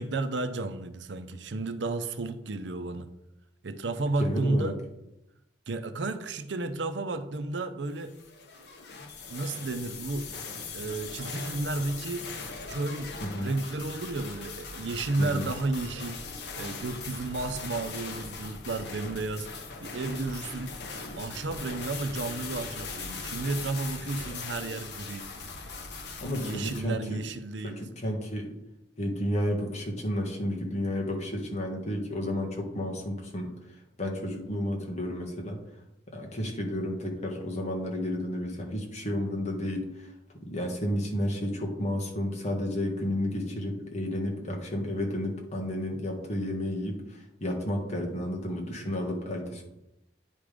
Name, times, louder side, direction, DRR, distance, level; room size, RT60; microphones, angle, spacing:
voice 1, 0.0-3.1 3.6-4.8 5.7-8.1 9.3-10.3 10.7-12.3 12.7-13.1 13.4-16.2 16.6-19.5 19.8-20.7 21.2-25.3 26.3-27.8, right 2 dB, 80° right, 0.6 m, -32 dB
voice 2, 4.2-4.7 13.2-13.6 15.2-15.5 26.2-27.2 27.6-28.5 29.0-33.5 34.0-35.6 36.1-40.1 40.4-49.6, left 1 dB, 40° left, 1.6 m, -32 dB
sound 1, 8.0-26.8, left 4 dB, 65° left, 1.1 m, -40 dB
10.0 x 3.6 x 5.0 m
head